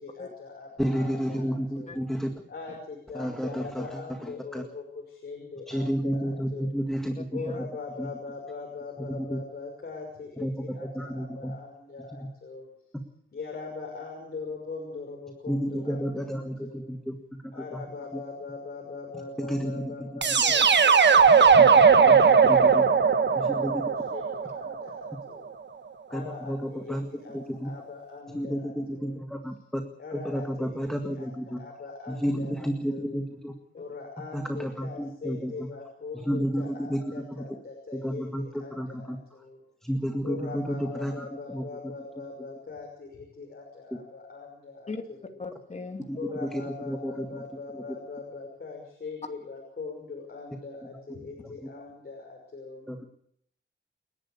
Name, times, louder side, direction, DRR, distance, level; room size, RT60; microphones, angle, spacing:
voice 1, 0.0-2.0 2.5-6.8 7.3-12.7 13.3-16.9 17.5-25.5 26.1-29.2 30.0-33.2 33.7-39.6 40.2-45.4 46.2-52.9, left 4 dB, 50° left, 0 dB, 5.9 m, -41 dB
voice 2, 0.8-2.3 3.1-4.6 5.7-7.1 8.0-8.1 9.3-9.4 10.4-10.5 10.9-11.5 15.5-17.2 17.7-17.8 19.4-20.2 21.6-21.7 22.1-22.8 23.4-23.8 26.1-27.1 27.3-27.7 28.3-29.8 30.1-31.6 32.1-33.5 34.3-35.7 36.2-37.0 37.3-37.4 37.9-39.2 39.8-41.3 41.5-41.7 46.1-47.4 47.7-47.8 52.9-53.0, equal, ahead, 5 dB, 1.9 m, -31 dB
sound 1, 20.2-25.1, right 6 dB, 60° right, 1.5 m, -19 dB
voice 3, 45.4-46.0, left 4 dB, 35° left, 4 dB, 2.5 m, -38 dB
29.5 x 11.5 x 8.5 m, 0.71 s
wide cardioid pair, 135°, 21 cm